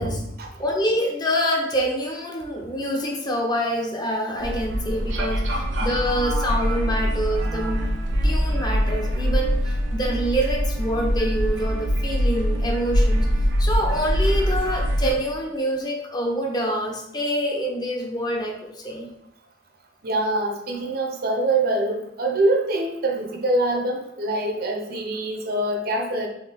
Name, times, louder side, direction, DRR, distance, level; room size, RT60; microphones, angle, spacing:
voice 1, 0.0-0.5 20.0-26.3, right 2 dB, 55° right, 2 dB, 0.7 m, -24 dB
voice 2, 0.6-7.8 8.2-13.3 13.6-19.1, equal, 20° left, 0 dB, 0.7 m, -26 dB
sound 1, 4.4-15.1, equal, 90° right, 0.7 m, -23 dB
4.0 x 3.2 x 3.4 m, 0.82 s
head